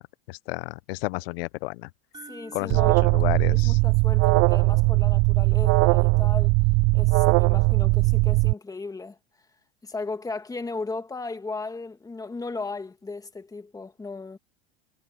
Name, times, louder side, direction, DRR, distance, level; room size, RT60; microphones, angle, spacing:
voice 1, 0.3-1.9 2.5-3.8, left 23 dB, 70° left, 0.6 m, -32 dB
sound 1, 2.1-6.2, right 4 dB, 15° right, 4.7 m, -52 dB
voice 2, 2.3-3.1 3.5-6.5 6.9-9.2 9.8-14.4, left 3 dB, 10° left, 2.3 m, -36 dB
Alarm, 2.7-8.5, right 27 dB, 50° right, 0.5 m, -20 dB
supercardioid pair, 115°, 30 cm